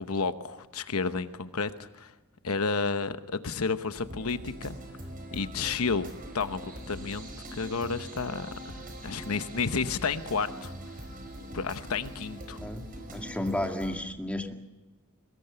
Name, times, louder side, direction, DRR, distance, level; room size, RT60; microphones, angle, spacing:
voice 1, 0.0-2.1 2.4-4.8 5.3-8.5 9.0-10.7 11.5-12.6, left 4 dB, 75° left, 10 dB, 1.0 m, -31 dB
sound 1, 4.0-14.0, equal, 40° right, 4.9 m, -42 dB
voice 2, 13.1-14.5, left 1 dB, 5° left, 3 dB, 1.9 m, -32 dB
23.5 x 21.0 x 6.9 m, 1.1 s
head